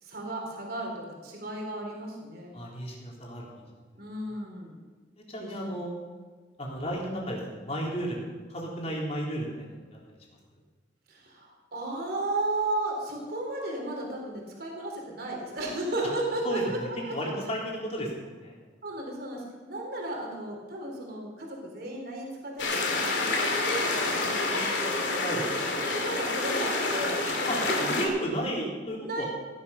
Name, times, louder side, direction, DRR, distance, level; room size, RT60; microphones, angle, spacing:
voice 1, 0.0-2.5 4.0-4.8 5.4-5.8 11.1-16.8 17.1-17.5 18.8-25.2 25.9-27.9 29.0-29.2, right 2 dB, 55° right, 0 dB, 3.5 m, -34 dB
voice 2, 2.5-3.6 5.3-5.9 6.6-8.2 8.5-10.0 16.4-18.6 25.2-25.5 27.5-29.3, equal, 35° left, -3 dB, 3.7 m, -33 dB
sound 1, 22.6-28.1, left 3 dB, 85° left, 2.6 m, -28 dB
16.0 x 11.0 x 5.6 m, 1.4 s
head